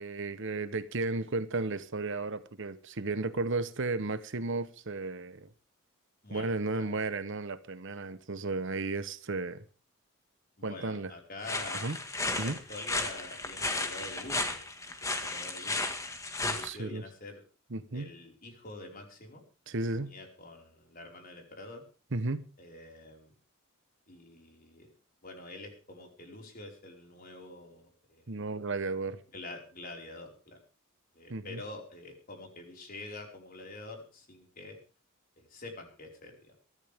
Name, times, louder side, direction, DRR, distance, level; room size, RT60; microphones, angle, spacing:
voice 1, 0.0-5.5 6.3-9.6 10.6-11.1 11.8-12.0 12.4-12.6 16.4-17.0 17.7-18.1 19.7-20.2 22.1-22.5 28.3-29.2 31.3-31.6, right 3 dB, 55° right, 1.0 m, -34 dB
voice 2, 10.6-11.9 12.3-14.6 15.2-15.9 16.5-17.4 17.9-19.4 19.9-21.8 22.6-23.3 24.1-24.9 25.2-28.3 29.3-30.6 31.1-34.8 35.4-36.5, left 2 dB, 40° left, 5.0 m, -46 dB
sound 1, 11.4-16.7, left 2 dB, 15° left, 1.8 m, -34 dB
23.0 x 13.5 x 3.6 m
head